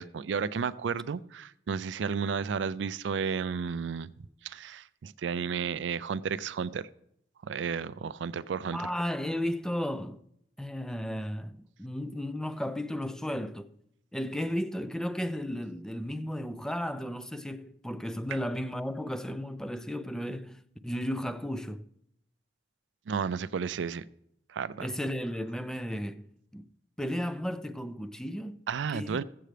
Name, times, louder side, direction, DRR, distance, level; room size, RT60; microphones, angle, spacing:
voice 1, 0.0-4.1 4.4-6.9 7.4-8.9 23.1-24.1 24.5-24.9 28.7-29.2, right 6 dB, 80° right, 0.4 m, -32 dB
voice 2, 8.7-10.2 10.6-13.7 14.1-21.8 24.8-26.3 26.5-26.7 27.0-28.6 28.9-29.2, equal, 5° left, 0.4 m, -34 dB
15.0 x 7.6 x 3.3 m
head